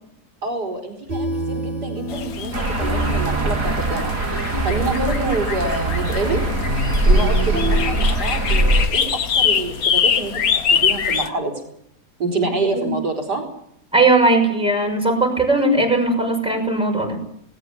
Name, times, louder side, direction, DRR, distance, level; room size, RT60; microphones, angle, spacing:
voice 1, 0.4-4.4 4.6-6.4 7.1-10.3 10.7-11.6 12.2-13.4, right 2 dB, 80° right, 5 dB, 5.6 m, -26 dB
sound 1, 1.1-7.9, right 2 dB, 30° right, 3.8 m, -28 dB
sound 2, 2.1-11.3, left 7 dB, 60° left, 1.7 m, -24 dB
sound 3, 2.5-8.9, right 1 dB, 55° right, 4.5 m, -21 dB
voice 2, 13.9-17.2, right 2 dB, 5° right, 2 dB, 5.9 m, -18 dB
19.5 x 18.0 x 9.9 m, 0.73 s
omnidirectional pair, 1.7 m